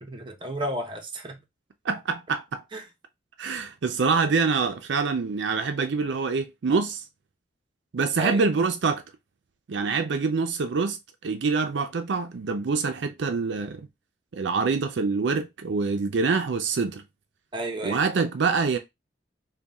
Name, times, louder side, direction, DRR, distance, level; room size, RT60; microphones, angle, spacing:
voice 1, 0.0-1.4 2.7-2.9 8.2-8.4 17.5-18.0, right 1 dB, 30° right, 0.8 m, -32 dB
voice 2, 1.8-2.6 3.4-7.0 7.9-9.0 9.7-11.0 11.2-13.9 14.3-17.0 17.8-18.8, right 4 dB, 75° right, 0.5 m, -25 dB
3.5 x 2.2 x 4.1 m
head